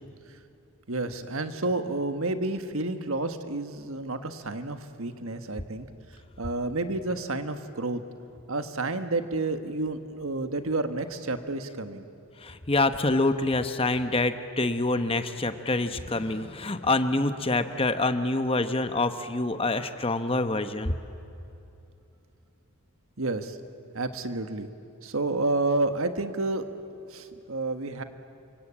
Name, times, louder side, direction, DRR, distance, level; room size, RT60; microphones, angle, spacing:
voice 1, 0.9-5.9 6.4-8.0 8.5-12.0 23.2-23.6 23.9-24.7 25.0-26.6 27.1-28.0, right 2 dB, 70° right, 9 dB, 1.5 m, -30 dB
voice 2, 12.4-21.0, left 2 dB, 25° left, 10 dB, 1.0 m, -26 dB
28.0 x 24.0 x 8.7 m, 2.8 s
head